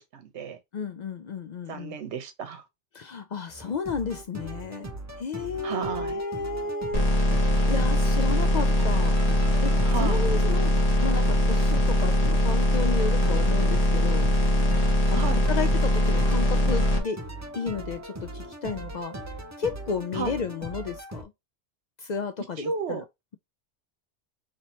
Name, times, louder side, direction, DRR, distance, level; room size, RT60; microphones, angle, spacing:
voice 1, 0.1-0.6 1.7-2.6 5.6-6.2 9.9-10.4 15.1-15.4 20.1-20.4 22.6-23.0, right 6 dB, 65° right, 1.1 m, -33 dB
voice 2, 0.7-2.0 2.9-4.9 5.2-7.0 7.7-9.2 9.6-10.7 11.0-14.3 15.1-17.2 17.6-19.2 19.6-21.3 22.0-23.0, left 5 dB, 70° left, 0.4 m, -32 dB
sound 1, 3.5-21.2, right 1 dB, 25° right, 0.4 m, -39 dB
sound 2, 6.9-17.0, left 1 dB, 35° left, 0.8 m, -22 dB
3.1 x 2.8 x 4.2 m
omnidirectional pair, 1.2 m